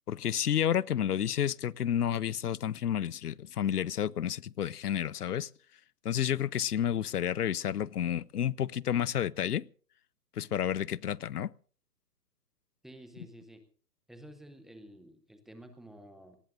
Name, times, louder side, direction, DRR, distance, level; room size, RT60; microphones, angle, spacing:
voice 1, 0.1-5.5 6.0-9.6 10.4-11.5, left 10 dB, 70° left, 0.8 m, -30 dB
voice 2, 12.8-13.6 14.1-16.4, right 1 dB, ahead, 0.7 m, -51 dB
26.5 x 19.0 x 2.6 m
hypercardioid pair, 140°, 48 cm